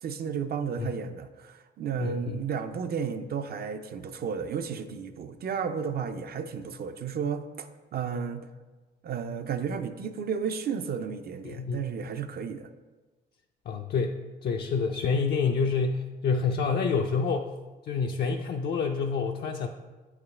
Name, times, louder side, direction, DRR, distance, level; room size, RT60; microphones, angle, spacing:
voice 1, 0.0-8.5 9.0-12.7, right 6 dB, 50° right, 9 dB, 0.5 m, -33 dB
voice 2, 2.0-2.4 11.4-11.9 13.7-17.5 17.9-19.7, left 5 dB, 55° left, 2 dB, 0.5 m, -28 dB
8.0 x 4.9 x 3.2 m, 1.3 s
cardioid pair, 90°, 20 cm